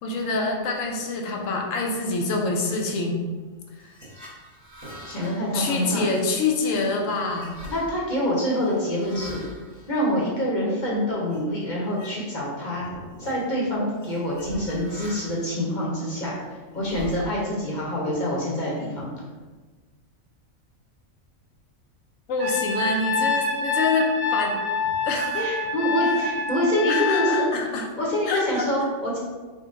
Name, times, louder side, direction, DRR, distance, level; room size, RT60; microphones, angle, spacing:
voice 1, 0.0-3.2 3.8-3.9 5.5-7.6 22.3-24.6 25.1-25.5 26.0-26.1 26.9-27.9 28.3-28.4, left 3 dB, 75° left, 1 dB, 0.9 m, -26 dB
sound 1, 3.7-10.8 11.3-11.5 11.8-12.5 12.7-13.4 14.0-15.5 16.1-17.6, equal, 15° right, 1.0 m, -44 dB
voice 2, 5.0-6.1 7.7-9.5 9.9-12.8 13.2-16.3 16.7-19.1 25.3-27.4 28.0-29.2, equal, 45° left, -5 dB, 0.7 m, -26 dB
Trumpet, 22.4-27.5, left 3 dB, 60° right, 1.6 m, -26 dB
3.9 x 2.1 x 3.6 m, 1.3 s
omnidirectional pair, 1.4 m